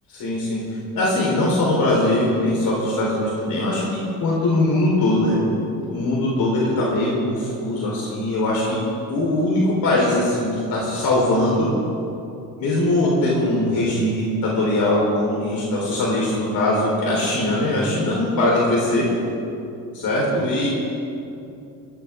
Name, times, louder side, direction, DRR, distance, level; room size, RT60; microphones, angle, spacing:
voice 1, 0.1-0.6 0.9-5.4 5.9-8.8 9.1-11.7 12.6-19.1 19.9-20.7, left 1 dB, 75° left, -5 dB, 4.5 m, -21 dB
22.0 x 17.0 x 3.8 m, 2.7 s
cardioid pair, 130°, 36 cm